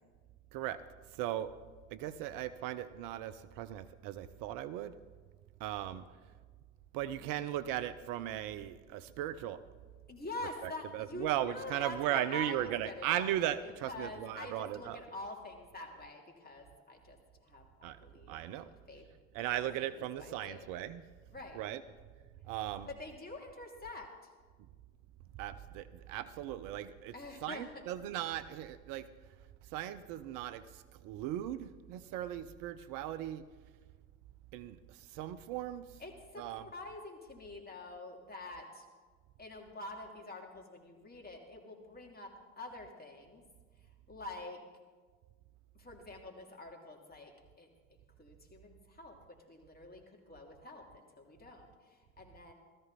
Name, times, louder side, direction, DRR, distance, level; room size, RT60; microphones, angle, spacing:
voice 1, 1.2-1.5 1.9-4.9 5.6-6.0 6.9-9.6 10.6-15.0 17.8-18.0 18.3-18.7 19.3-21.0 21.5-21.8 22.5-22.9 25.4-27.1 27.4-29.0 29.7-30.6 31.0-33.4 34.5-34.8 35.1-35.9 36.4-36.7, right 12 dB, 60° right, 14 dB, 0.6 m, -37 dB
voice 2, 10.1-17.2 17.4-19.0 19.6-20.7 21.3-21.6 22.8-24.1 27.1-27.8 36.0-38.8 39.4-43.4 44.1-44.6 45.7-47.7 48.2-52.5, left 2 dB, 25° left, 1 dB, 3.0 m, -47 dB
17.0 x 13.5 x 4.1 m, 1.5 s
hypercardioid pair, 60°, 36 cm